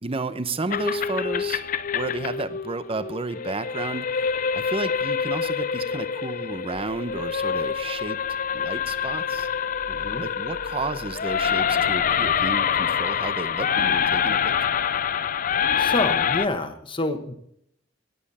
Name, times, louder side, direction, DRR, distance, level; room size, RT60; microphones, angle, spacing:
voice 1, 0.0-1.6 1.9-8.2 8.5-9.5 10.2-14.5, right 3 dB, 30° right, 12 dB, 0.8 m, -32 dB
sound 1, 0.7-16.5, left 7 dB, 45° left, 0.5 m, -26 dB
sound 2, 6.7-15.6, equal, 50° right, 6.4 m, -50 dB
voice 2, 9.9-10.2 15.8-17.3, left 2 dB, 25° left, 7 dB, 1.4 m, -28 dB
17.5 x 8.9 x 4.3 m, 0.72 s
head